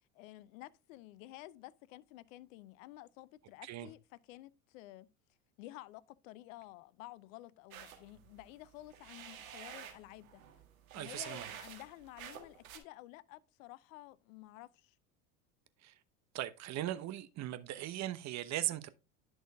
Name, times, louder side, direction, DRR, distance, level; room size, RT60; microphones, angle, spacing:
voice 1, 0.1-5.1 5.6-10.4 11.0-14.9, left 17 dB, 70° left, 0.7 m, -52 dB
sound 1, 7.7-12.8, right 9 dB, 80° right, 1.7 m, -50 dB
voice 2, 10.9-11.5 15.8-15.9 16.3-18.9, right 13 dB, 40° right, 0.9 m, -39 dB
11.0 x 6.3 x 2.3 m
hypercardioid pair, 80°, 42 cm